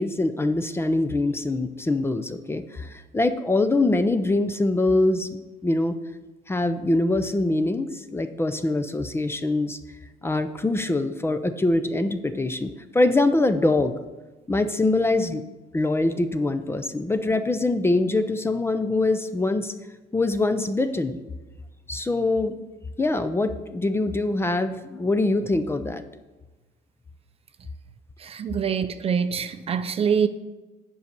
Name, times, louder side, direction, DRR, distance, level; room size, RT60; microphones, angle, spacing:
voice 1, 0.0-5.3 5.6-6.0 6.5-9.8 10.2-13.9 14.5-15.4 15.7-19.7 20.1-21.2 21.9-22.6 23.0-26.0, left 2 dB, 15° left, 0.5 m, -23 dB
voice 2, 28.2-30.3, right 7 dB, 35° right, 0.5 m, -25 dB
7.8 x 5.4 x 6.6 m
cardioid pair, 110°, 17 cm